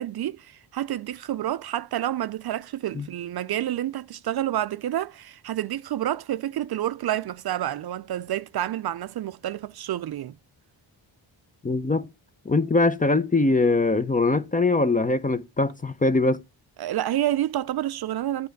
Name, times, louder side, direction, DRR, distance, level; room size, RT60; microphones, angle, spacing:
voice 1, 0.0-10.3 16.8-18.5, right 12 dB, 55° right, 0.5 m, -29 dB
voice 2, 11.6-12.1 12.5-16.4, left 3 dB, 20° left, 0.5 m, -22 dB
9.3 x 3.5 x 6.4 m
cardioid pair, 75°, 46 cm